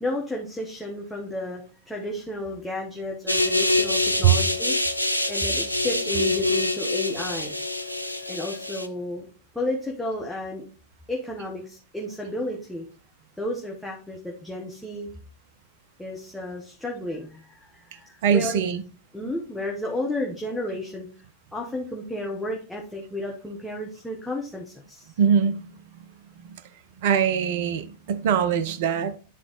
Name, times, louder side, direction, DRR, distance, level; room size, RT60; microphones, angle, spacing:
voice 1, 0.0-4.7 5.3-7.6 8.3-9.3 9.5-10.7 11.1-12.8 13.4-15.1 16.0-18.6 19.1-21.1 21.5-25.1, left 1 dB, 5° left, 1.0 m, -32 dB
sound 1, 3.3-8.9, left 2 dB, 90° left, 0.5 m, -25 dB
voice 2, 18.2-18.8 25.2-25.7 27.0-29.2, right 8 dB, 50° right, 0.6 m, -22 dB
9.8 x 3.8 x 3.0 m
figure-of-eight pair, 90°, 0 cm